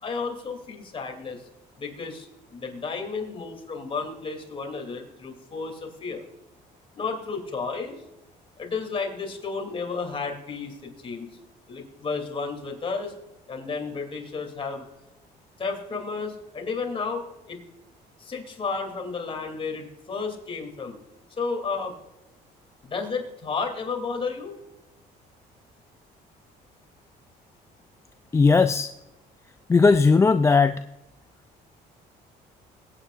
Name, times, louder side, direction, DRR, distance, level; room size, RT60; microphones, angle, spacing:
voice 1, 0.0-1.4 1.8-6.2 6.9-8.0 8.6-11.3 11.7-13.1 13.5-14.9 15.6-17.6 18.2-21.0 21.4-21.9 22.8-24.6, left 4 dB, 30° left, 2 dB, 2.8 m, -32 dB
voice 2, 28.3-28.9 29.7-30.8, left 4 dB, 15° left, 9 dB, 0.3 m, -17 dB
22.0 x 8.9 x 2.5 m, 0.97 s
cardioid pair, 110°, 17 cm